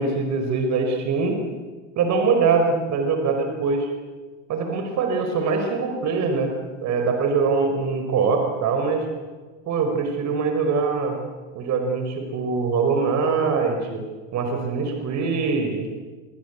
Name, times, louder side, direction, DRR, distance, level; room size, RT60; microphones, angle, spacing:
voice 1, 0.0-1.4 2.0-3.9 4.5-6.5 6.8-9.1 9.7-11.2 11.5-14.0 14.3-15.9, right 4 dB, 45° right, 5 dB, 5.4 m, -23 dB
28.5 x 24.5 x 8.4 m, 1.4 s
hypercardioid pair, 90°, 38 cm